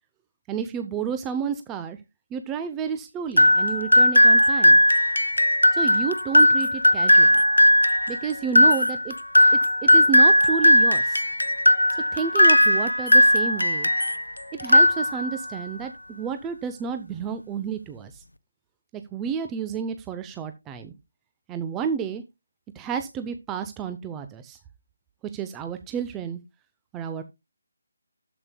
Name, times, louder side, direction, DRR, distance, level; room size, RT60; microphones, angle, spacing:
voice 1, 0.5-2.0 2.3-4.8 5.7-7.4 8.1-9.1 9.8-11.2 12.1-13.9 14.5-18.2 18.9-20.9 21.5-22.2 22.8-24.6 25.3-26.4 26.9-27.2, right 7 dB, 10° right, 8 dB, 0.6 m, -31 dB
sound 1, 3.4-14.2 14.6-15.5, left 1 dB, 85° left, 0.7 m, -18 dB
12.0 x 8.1 x 2.2 m, 0.22 s
figure-of-eight pair, 155°, 0 cm